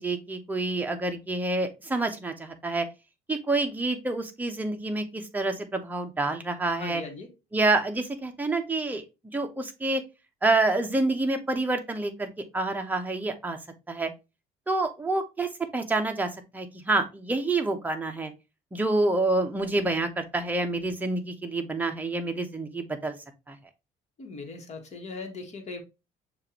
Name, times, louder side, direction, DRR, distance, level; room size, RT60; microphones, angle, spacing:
voice 1, 0.0-2.9 3.3-7.0 7.5-9.0 9.3-10.0 10.4-12.3 12.5-13.6 13.9-14.1 14.7-18.3 18.7-23.2 23.5-23.6, right 2 dB, 10° right, 0.8 m, -27 dB
voice 2, 6.8-7.3 24.2-25.8, left 3 dB, 40° left, 1.4 m, -39 dB
6.5 x 2.6 x 2.9 m
cardioid pair, 110°, 17 cm